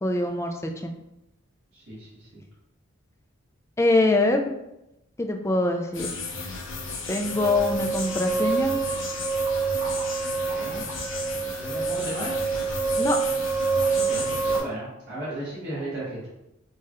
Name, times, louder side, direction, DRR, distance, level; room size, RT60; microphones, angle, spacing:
voice 1, 0.0-0.9 3.8-4.6 5.2-6.1 7.1-8.8 13.0-13.2, left 2 dB, 15° left, 3 dB, 0.3 m, -24 dB
voice 2, 1.7-2.1 2.3-2.4 10.4-10.8 11.1-12.4 13.9-16.3, right 1 dB, 55° right, -9 dB, 1.3 m, -35 dB
sound 1, 5.9-14.6, left 4 dB, 65° left, 0.6 m, -34 dB
sound 2, 7.3-14.6, right 5 dB, 10° right, 0.7 m, -27 dB
4.7 x 2.3 x 2.9 m, 0.88 s
head